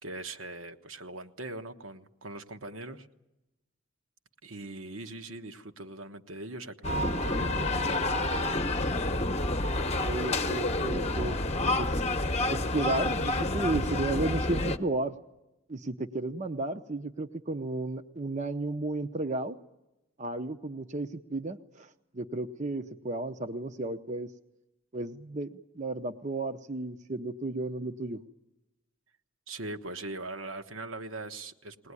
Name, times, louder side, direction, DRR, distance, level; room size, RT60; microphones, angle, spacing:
voice 1, 0.0-3.1 4.4-8.4 29.5-31.9, right 2 dB, 75° right, 6 dB, 1.3 m, -41 dB
sound 1, 6.8-14.8, left 2 dB, 30° left, 1.0 m, -29 dB
voice 2, 10.0-11.4 11.8-12.0 12.5-15.2 15.7-19.6 20.2-24.3 24.9-28.2, right 2 dB, 35° right, 8 dB, 0.7 m, -33 dB
21.0 x 19.0 x 9.7 m, 0.95 s
head